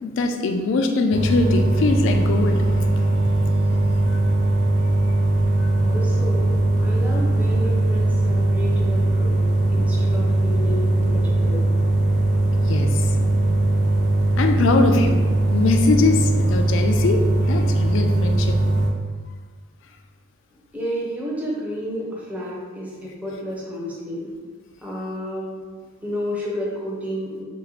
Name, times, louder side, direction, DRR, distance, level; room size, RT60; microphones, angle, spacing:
voice 1, 0.0-3.2 3.6-3.7 4.1-4.2 4.8-5.0 5.6-5.7 12.7-13.1 14.3-15.2 15.5-18.6, left 3 dB, 65° left, 5 dB, 0.3 m, -22 dB
sound 1, 1.1-18.9, right 2 dB, 35° right, 0.3 m, -20 dB
voice 2, 5.8-9.5 9.7-11.8 20.7-24.3 24.8-25.5 26.0-27.4, equal, 5° right, -6 dB, 0.7 m, -31 dB
2.8 x 2.1 x 3.9 m, 1.5 s
head